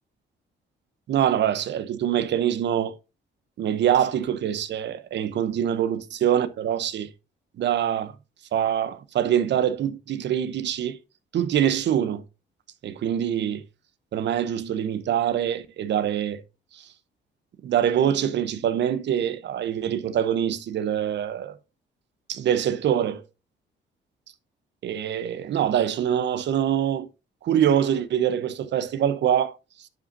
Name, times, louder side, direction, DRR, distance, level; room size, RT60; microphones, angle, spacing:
voice 1, 1.1-3.0 3.6-7.1 7.6-8.1 8.5-11.0 11.3-12.2 12.8-13.6 14.1-16.4 16.7-16.9 17.6-21.6 22.3-23.2 24.8-27.1 27.4-29.6, right 10 dB, 65° right, 0.7 m, -24 dB
10.5 x 5.1 x 2.6 m
cardioid pair, 90°, 20 cm